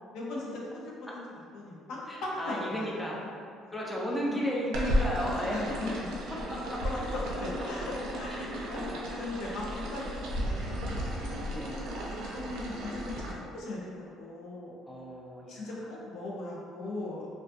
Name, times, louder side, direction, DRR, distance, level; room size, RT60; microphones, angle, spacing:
voice 1, 0.1-1.2 1.5-3.3 3.6-3.7 4.3-4.4 5.5-5.9 6.8-8.8 9.1-11.5 12.0-14.8 15.5-17.3, left 2 dB, 75° left, -4 dB, 0.5 m, -39 dB
voice 2, 2.1-3.2 3.7-5.8 6.5-6.8 8.4-8.5 8.7-9.0 11.5-11.8 14.9-15.6, equal, 5° left, -5 dB, 0.5 m, -34 dB
sound 1, 4.7-13.3, equal, 75° right, 0.4 m, -34 dB
2.4 x 2.3 x 2.5 m, 2.3 s
cardioid pair, 95°, 0 cm